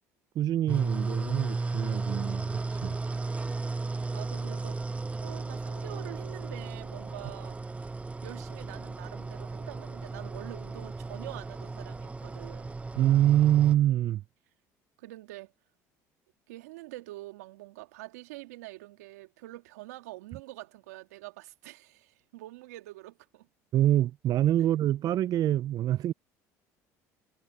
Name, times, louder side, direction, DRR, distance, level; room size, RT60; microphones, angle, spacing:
voice 1, 0.4-3.0 13.0-14.2 23.7-26.1, right 12 dB, 50° right, 0.5 m, -25 dB
sound 1, 0.7-13.7, right 3 dB, 15° right, 0.7 m, -35 dB
voice 2, 4.1-7.8 8.2-12.8 15.0-15.5 16.5-23.5, right 18 dB, 85° right, 2.5 m, -46 dB
hypercardioid pair, 75°, 8 cm